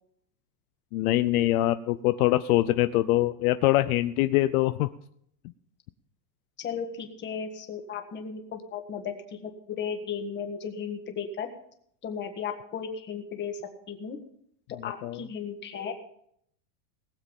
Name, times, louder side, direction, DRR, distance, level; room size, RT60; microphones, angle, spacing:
voice 1, 0.9-4.9 15.0-15.2, left 16 dB, 65° left, 11 dB, 0.7 m, -23 dB
voice 2, 6.6-11.5 12.0-13.6 13.9-14.2 14.8-15.9, left 6 dB, 20° left, 5 dB, 1.6 m, -35 dB
19.5 x 7.4 x 5.3 m, 0.70 s
supercardioid pair, 160°, 48 cm